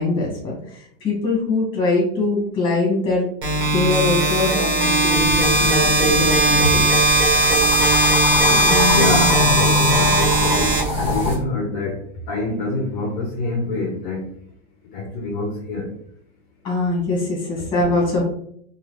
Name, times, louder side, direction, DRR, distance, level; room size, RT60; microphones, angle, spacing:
voice 1, 0.0-3.2 3.6-6.8 8.5-9.4 16.6-18.2, left 3 dB, 15° left, -3 dB, 1.1 m, -22 dB
sound 1, 3.4-11.4, right 1 dB, 60° right, 1.5 m, -18 dB
sound 2, 5.1-11.4, left 2 dB, 15° right, 0.8 m, -26 dB
voice 2, 8.9-12.0 12.3-14.2 14.9-15.9, left 3 dB, 40° left, 1 dB, 0.5 m, -25 dB
3.1 x 2.3 x 3.0 m, 0.67 s
supercardioid pair, 170°, 37 cm